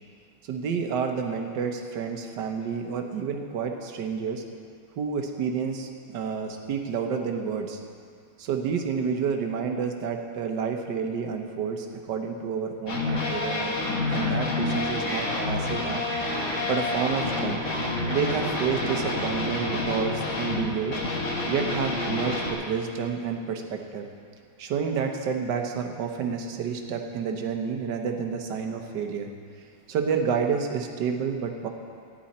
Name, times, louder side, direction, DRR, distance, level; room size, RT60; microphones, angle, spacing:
voice 1, 0.4-4.4 5.0-7.8 8.4-13.8 14.1-16.0 16.7-17.6 18.1-21.0 21.5-24.1 24.6-29.3 29.9-31.7, right 6 dB, 60° right, 4 dB, 1.4 m, -29 dB
sound 1, 12.9-22.5, left 2 dB, 40° left, 1.5 m, -28 dB
sound 2, 13.0-19.1, right 1 dB, 15° right, 1.8 m, -38 dB
14.5 x 10.5 x 4.3 m, 2.3 s
omnidirectional pair, 2.4 m